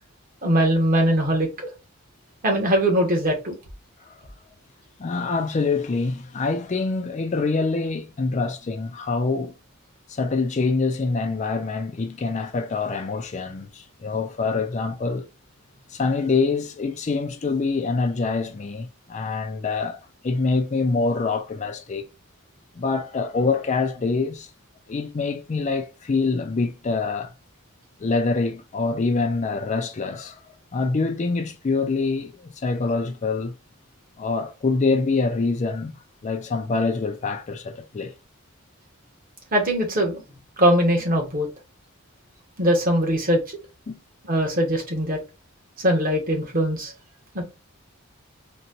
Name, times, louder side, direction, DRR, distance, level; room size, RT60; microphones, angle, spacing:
voice 1, 0.4-1.5 2.4-3.6 39.5-40.2 40.6-41.5 42.6-43.6 44.3-45.2 45.8-46.9 47.3-47.4, equal, 40° right, 1.1 m, -21 dB
voice 2, 5.0-9.5 10.1-15.3 15.9-22.0 22.8-24.5 24.9-27.3 28.0-30.4 30.7-33.5 34.2-35.9 36.2-38.1 43.9-44.0, left 4 dB, 35° left, 0.4 m, -25 dB
4.1 x 2.2 x 2.6 m
head